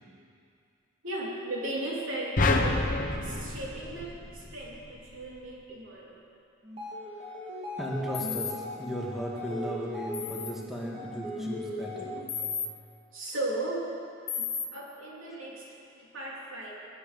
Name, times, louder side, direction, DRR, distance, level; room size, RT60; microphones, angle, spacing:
voice 1, 1.0-2.8 3.1-6.2 13.1-13.9 14.3-14.4 14.7-15.6 15.9-16.7, right 1 dB, 85° right, -4 dB, 3.1 m, -36 dB
sound 1, 2.4-4.8, left 2 dB, 40° left, 1.0 m, -28 dB
sound 2, 6.6-12.4, left 1 dB, 30° right, 2.6 m, -38 dB
voice 2, 7.8-12.4 12.6-12.8, equal, ahead, -4 dB, 1.6 m, -37 dB
sound 3, 8.1-8.5 10.1-10.5 12.3-12.7 14.3-14.7, left 7 dB, 75° left, 1.3 m, -33 dB
20.0 x 9.7 x 5.2 m, 2.5 s
head